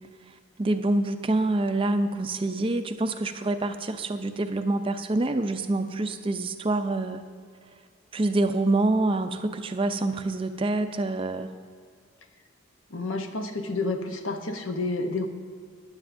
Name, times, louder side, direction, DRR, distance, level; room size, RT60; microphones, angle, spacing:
voice 1, 0.6-7.3 8.1-11.5, right 2 dB, 25° right, 8 dB, 0.4 m, -26 dB
voice 2, 12.9-15.3, left 2 dB, 75° left, 6 dB, 0.8 m, -30 dB
14.5 x 10.5 x 2.6 m, 2.1 s
head